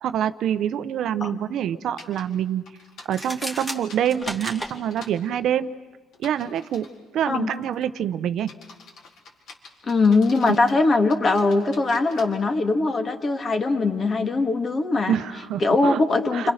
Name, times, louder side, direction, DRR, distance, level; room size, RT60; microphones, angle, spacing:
voice 1, 0.0-2.6 3.1-5.7 6.2-6.9 7.1-8.5 10.4-10.6 15.1-16.0 16.3-16.5, right 10 dB, 60° right, 13 dB, 0.8 m, -26 dB
sound 1, 2.0-2.2 2.6-5.1 6.1-7.0 7.5-7.8 8.4-10.8 11.1-12.2, left 4 dB, 60° left, 4.2 m, -46 dB
sound 2, 3.0-4.7, equal, 10° left, 2.6 m, -33 dB
voice 2, 9.8-15.1 15.6-16.5, left 3 dB, 30° left, 7 dB, 2.0 m, -21 dB
30.0 x 25.5 x 6.6 m, 1.3 s
cardioid pair, 135°, 0 cm